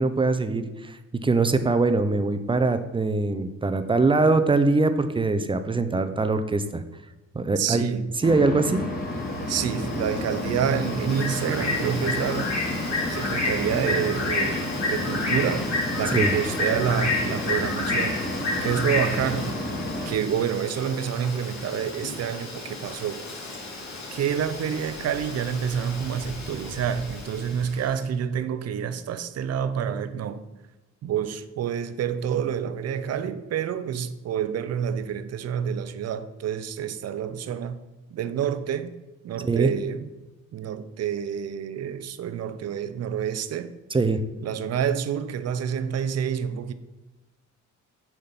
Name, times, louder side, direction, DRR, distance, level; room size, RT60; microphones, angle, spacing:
voice 1, 0.0-6.8 7.3-7.8 8.2-8.8 16.1-16.3 39.4-39.7 43.9-44.2, right 3 dB, 15° right, 0.6 m, -23 dB
voice 2, 7.6-8.1 9.5-12.5 13.1-18.2 18.6-19.5 20.0-23.2 24.1-30.4 31.0-37.8 38.1-38.9 39.2-40.1 40.5-43.7 44.4-46.7, right 8 dB, 55° right, 0.6 m, -28 dB
sound 1, 8.2-20.1, left 1 dB, 30° left, 1.8 m, -31 dB
Bird, 9.1-27.9, left 2 dB, 65° left, 2.4 m, -31 dB
6.7 x 3.7 x 5.8 m
cardioid pair, 90°, 30 cm